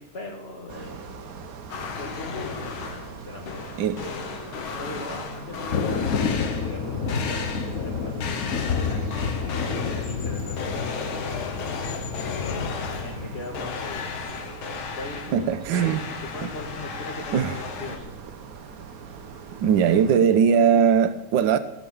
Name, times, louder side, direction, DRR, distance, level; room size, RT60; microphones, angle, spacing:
voice 1, 0.0-1.5 1.8-4.2 4.7-11.6 12.4-14.2 14.9-15.6 16.1-18.1, left 2 dB, 35° left, 1.6 m, -40 dB
sound 1, 0.7-20.2, right 6 dB, 55° right, 1.2 m, -42 dB
sound 2, 1.7-3.2 3.5-6.8 7.1-7.8 8.2-10.2 10.6-13.3 13.5-18.0, left 6 dB, 85° left, 2.1 m, -35 dB
Thunder, 5.7-14.7, left 6 dB, 50° left, 1.2 m, -30 dB
voice 2, 15.3-16.1 17.3-17.5 19.6-21.6, right 7 dB, 70° right, 1.5 m, -20 dB
16.5 x 6.8 x 7.2 m
omnidirectional pair, 2.2 m